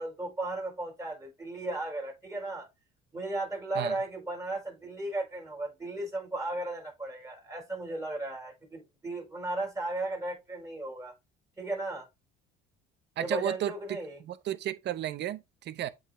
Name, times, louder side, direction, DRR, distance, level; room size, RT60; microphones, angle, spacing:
voice 1, 0.0-2.7 3.1-11.1 11.6-12.1 13.2-14.2, right 2 dB, 15° right, 4.8 m, -35 dB
voice 2, 13.2-14.0 14.2-15.9, right 12 dB, 55° right, 0.7 m, -33 dB
8.0 x 3.9 x 3.1 m
supercardioid pair, 90°, 21 cm